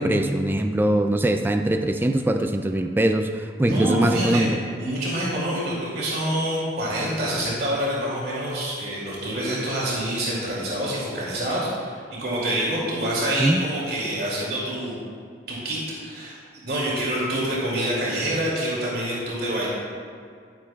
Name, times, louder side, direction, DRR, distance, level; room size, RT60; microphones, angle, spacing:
voice 1, 0.0-4.5 13.4-13.6, right 1 dB, 10° right, 6 dB, 0.3 m, -22 dB
voice 2, 3.6-4.5 4.7-15.0 15.5-16.4 16.6-19.7, right 1 dB, 60° right, -6 dB, 2.6 m, -26 dB
11.5 x 11.5 x 2.4 m, 2.2 s
head